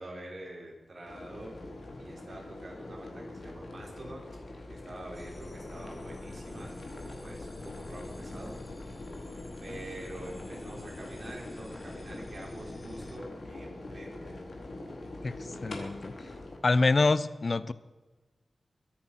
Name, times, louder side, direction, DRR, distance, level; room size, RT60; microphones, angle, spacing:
voice 1, 0.0-1.6 2.0-4.3 4.7-8.6 9.6-14.4, right 1 dB, 50° right, -2 dB, 5.8 m, -46 dB
sound 1, 1.1-16.6, left 2 dB, 65° left, 3.4 m, -43 dB
sound 2, 5.1-13.2, left 2 dB, 30° left, 1.3 m, -48 dB
voice 2, 15.6-16.1 16.6-17.7, left 3 dB, 50° left, 16 dB, 0.8 m, -25 dB
22.5 x 10.5 x 5.9 m, 1.2 s
wide cardioid pair, 85°, 0 cm